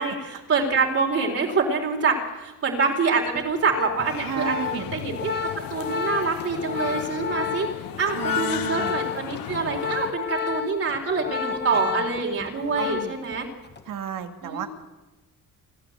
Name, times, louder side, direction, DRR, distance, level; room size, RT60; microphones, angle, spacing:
voice 1, 0.0-7.7 8.0-13.5 14.4-14.7, right 4 dB, 45° right, 0 dB, 4.2 m, -26 dB
Organ, 3.3-13.4 13.6-13.9, left 6 dB, 30° left, 1.5 m, -31 dB
sound 1, 4.0-10.1, left 13 dB, 85° left, 0.9 m, -35 dB
voice 2, 4.2-4.9 8.1-9.0 11.4-12.2 12.8-13.2 13.9-14.7, right 9 dB, 75° right, 6 dB, 2.1 m, -34 dB
27.5 x 13.0 x 8.0 m, 1.1 s
cardioid pair, 155°, 34 cm